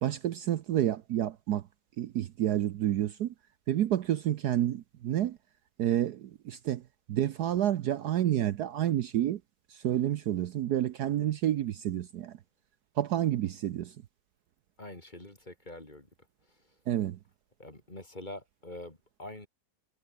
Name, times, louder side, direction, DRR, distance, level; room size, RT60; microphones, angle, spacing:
voice 1, 0.0-1.7 2.0-3.3 3.7-5.4 5.8-6.8 7.1-9.4 9.7-12.4 13.0-14.0 16.9-17.2, right 12 dB, 65° right, 1.2 m, -29 dB
voice 2, 14.8-16.1 16.5-16.8 17.6-19.5, left 1 dB, 25° left, 3.7 m, -45 dB
omnidirectional pair, 1.9 m